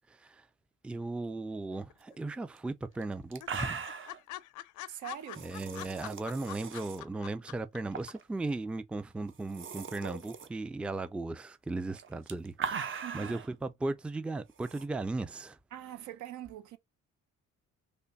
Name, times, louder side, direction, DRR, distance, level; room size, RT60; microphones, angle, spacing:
voice 1, 0.1-0.5 0.8-3.8 5.4-15.6, right 2 dB, 5° right, 0.3 m, -37 dB
sound 1, 1.7-2.4 2.6-2.7 3.0-3.1 3.4-7.8 8.1-8.2, left 15 dB, 80° left, 0.5 m, -44 dB
sound 2, 2.6-2.7 3.0-3.1 3.3-4.2 5.3-7.0 7.9-8.2 8.5-8.6 9.3-10.5 11.9-13.5 14.6-14.8, right 6 dB, 45° right, 0.7 m, -40 dB
voice 2, 4.9-5.5 13.0-13.4 15.7-16.8, right 12 dB, 80° right, 0.7 m, -43 dB
3.3 x 2.2 x 3.9 m
cardioid pair, 90°, 30 cm